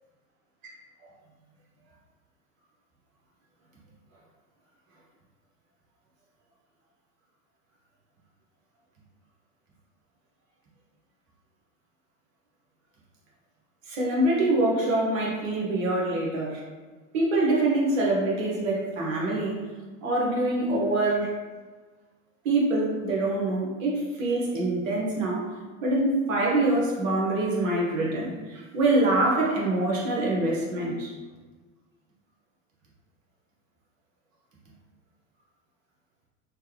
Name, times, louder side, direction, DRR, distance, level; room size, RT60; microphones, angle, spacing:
voice 1, 13.9-16.6 17.1-19.6 20.0-21.3 22.4-25.5 25.8-31.1, right 2 dB, 75° right, -3 dB, 1.2 m, -25 dB
3.2 x 2.2 x 3.3 m, 1.3 s
hypercardioid pair, 90°, 39 cm